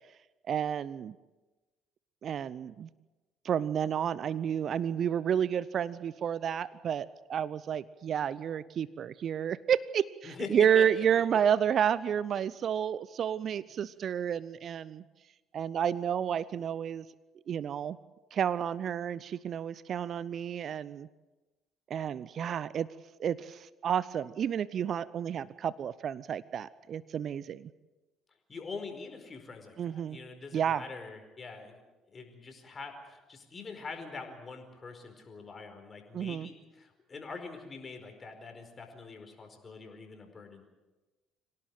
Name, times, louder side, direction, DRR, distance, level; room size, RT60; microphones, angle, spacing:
voice 1, 0.5-1.2 2.2-2.9 3.4-15.0 15.5-17.0 17.5-18.0 18.3-21.1 21.9-22.9 23.2-27.7 29.8-30.2 30.5-30.8 36.1-36.5, right 8 dB, 50° right, 19 dB, 0.7 m, -30 dB
voice 2, 10.2-11.2 28.5-31.8 32.1-40.6, left 4 dB, 35° left, 5 dB, 4.9 m, -44 dB
25.0 x 17.5 x 7.8 m, 1.1 s
hypercardioid pair, 55°, 0 cm